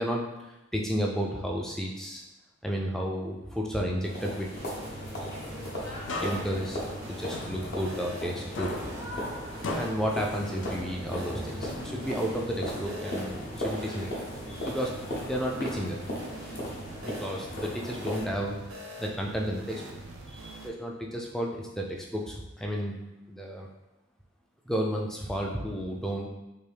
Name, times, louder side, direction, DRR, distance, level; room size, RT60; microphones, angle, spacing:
voice 1, 0.0-2.2 2.6-4.5 5.4-5.7 6.2-6.8 7.1-8.7 9.7-14.1 14.5-16.0 17.0-18.6 19.0-19.8 20.3-23.0 23.3-23.7 24.7-26.3, equal, ahead, -1 dB, 0.3 m, -32 dB
sound 1, 4.0-18.2, equal, 50° left, 0.9 m, -37 dB
sound 2, 4.6-20.7, right 1 dB, 85° right, 0.5 m, -44 dB
sound 3, 6.1-8.3 8.6-11.2 11.6-13.3, left 2 dB, 70° left, 0.4 m, -40 dB
3.4 x 2.5 x 3.3 m, 1.0 s
head